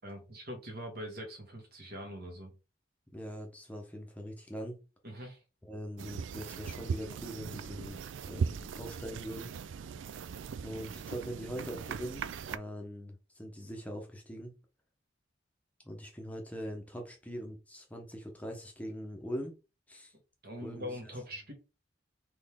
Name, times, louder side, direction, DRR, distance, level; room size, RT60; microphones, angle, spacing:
voice 1, 0.0-2.5 5.0-5.4 20.4-21.5, equal, 55° right, 2 dB, 1.6 m, -43 dB
voice 2, 3.1-4.8 5.6-9.5 10.6-14.5 15.8-19.5 19.9-20.1 20.6-21.0, equal, 10° left, 2 dB, 0.8 m, -42 dB
sound 1, 6.0-12.6, right 6 dB, 75° right, 0.4 m, -39 dB
4.2 x 3.2 x 3.6 m, 0.30 s
head